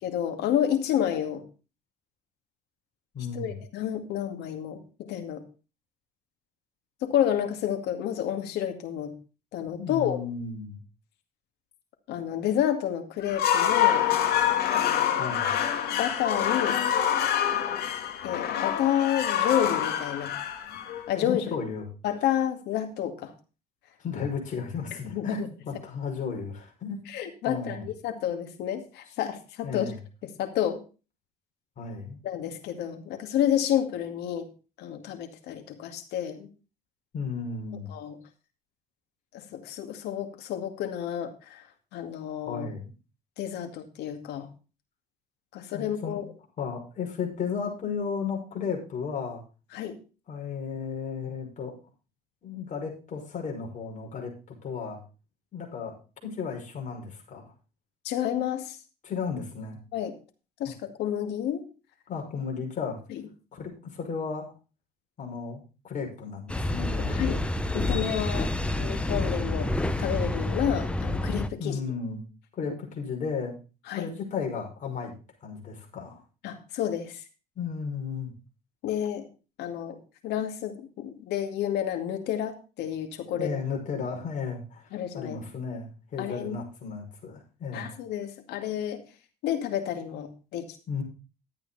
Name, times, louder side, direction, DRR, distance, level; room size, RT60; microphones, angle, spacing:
voice 1, 0.0-1.4 3.3-5.4 7.0-9.1 9.5-10.2 12.1-14.1 14.7-15.2 15.9-16.8 18.2-20.3 21.1-21.5 22.0-23.3 24.2-24.3 25.0-25.5 27.1-29.9 30.4-30.8 32.2-34.5 34.8-36.5 37.9-38.2 39.3-41.6 41.9-42.7 43.4-44.5 45.5-46.3 49.7-50.0 58.0-58.8 59.9-60.2 60.6-61.7 63.1-63.2 67.1-67.4 67.7-68.5 68.8-71.8 73.9-74.1 76.4-77.2 78.8-79.3 79.6-80.0 80.2-83.5 84.9-85.4 86.2-86.6 87.7-89.0 89.4-90.8, left 10 dB, 85° left, 6 dB, 2.3 m, -30 dB
voice 2, 3.1-3.6 9.7-10.8 15.2-15.5 21.2-21.9 24.0-27.1 27.5-27.8 29.6-30.0 31.8-32.2 37.1-37.9 42.5-42.9 45.7-46.2 46.6-49.4 50.3-51.8 52.4-55.0 55.5-56.0 56.2-57.4 59.0-59.8 62.1-63.0 63.5-64.5 65.2-67.4 71.6-72.2 72.5-73.5 74.0-75.1 75.4-76.2 77.6-78.3 83.3-87.9 90.9-91.0, left 5 dB, 50° left, 1 dB, 5.6 m, -34 dB
sound 1, 13.2-21.3, left 10 dB, 70° left, 2.4 m, -26 dB
sound 2, 66.5-71.5, left 2 dB, 5° left, 1.0 m, -28 dB
12.5 x 8.9 x 4.1 m, 0.32 s
cardioid pair, 110°, 17 cm